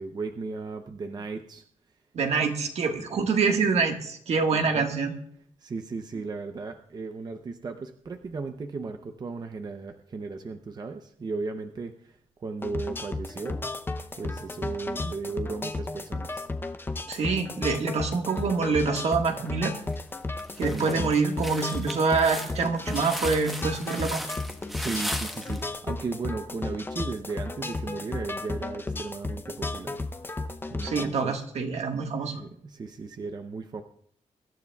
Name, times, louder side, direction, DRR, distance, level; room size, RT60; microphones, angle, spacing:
voice 1, 0.0-1.6 4.5-4.9 5.6-13.7 14.2-16.5 20.7-21.1 24.8-30.1 30.7-31.3 32.2-33.8, right 4 dB, 35° right, 6 dB, 0.6 m, -36 dB
voice 2, 2.1-5.1 17.1-19.7 20.6-24.2 30.8-32.4, right 4 dB, 60° right, 4 dB, 1.5 m, -26 dB
sound 1, 12.6-31.0, left 3 dB, 20° left, 0.6 m, -34 dB
sound 2, 18.9-19.4 19.9-20.0 20.4-25.7, equal, ahead, 1.0 m, -37 dB
23.5 x 12.0 x 2.3 m, 0.66 s
wide cardioid pair, 155°, 12 cm